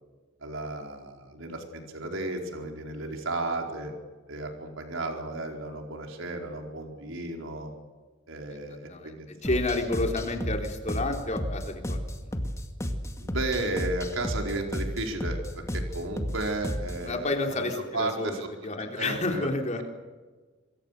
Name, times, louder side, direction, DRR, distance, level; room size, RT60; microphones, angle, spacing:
voice 1, 0.4-3.9 4.3-7.7 8.3-9.6 13.2-18.5 18.8-19.5, right 2 dB, 80° right, 3 dB, 4.7 m, -34 dB
voice 2, 8.7-9.1 9.4-12.4 17.1-19.8, left 2 dB, 35° left, 3 dB, 3.7 m, -30 dB
sound 1, 9.4-17.1, equal, 15° left, 2.1 m, -33 dB
27.0 x 22.5 x 6.7 m, 1.3 s
head